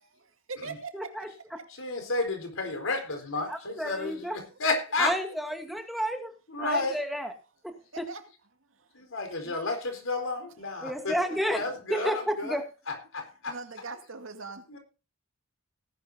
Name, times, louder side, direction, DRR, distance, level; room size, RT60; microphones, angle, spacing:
voice 1, 0.0-0.9 3.9-4.1 4.5-4.6 7.9-8.2 8.8-8.9 9.5-9.6 10.7-10.8 11.1-11.3 11.7-11.8 13.5-14.7, right 4 dB, 75° right, 2.3 m, -42 dB
voice 2, 0.9-1.3 3.5-4.4 5.0-6.3 6.6-7.3 7.6-7.7 9.4-9.5 10.8-11.6 11.9-12.6, equal, ahead, 2.2 m, -31 dB
voice 3, 1.7-5.2 6.5-7.0 8.9-11.2 11.5-12.6 12.9-13.6 14.7-14.8, left 3 dB, 75° left, 4.4 m, -31 dB
18.5 x 11.5 x 2.7 m
head